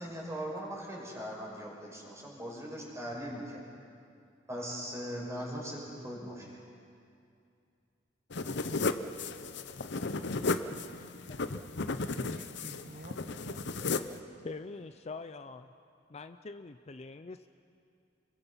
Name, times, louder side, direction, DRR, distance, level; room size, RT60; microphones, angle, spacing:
voice 1, 0.0-3.6 4.5-6.6, equal, 15° right, -3 dB, 6.1 m, -40 dB
sound 1, 8.3-14.2, left 3 dB, 65° left, 0.9 m, -34 dB
voice 2, 10.4-11.1 12.2-13.9, right 2 dB, 45° right, 5 dB, 0.9 m, -51 dB
voice 3, 14.4-15.7 16.1-17.5, left 3 dB, 35° left, 9 dB, 0.6 m, -44 dB
29.5 x 22.5 x 5.7 m, 2.5 s
head